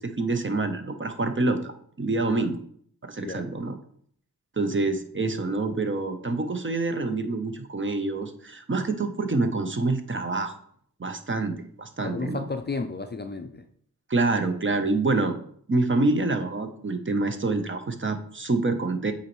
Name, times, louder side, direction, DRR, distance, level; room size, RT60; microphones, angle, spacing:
voice 1, 0.0-2.6 3.0-3.7 4.6-10.5 11.0-12.5 14.1-15.4 15.7-19.1, right 3 dB, 30° right, 7 dB, 0.8 m, -26 dB
voice 2, 12.0-13.7, left 3 dB, 30° left, 7 dB, 0.5 m, -33 dB
8.2 x 4.0 x 3.1 m, 0.62 s
cardioid pair, 55°, 38 cm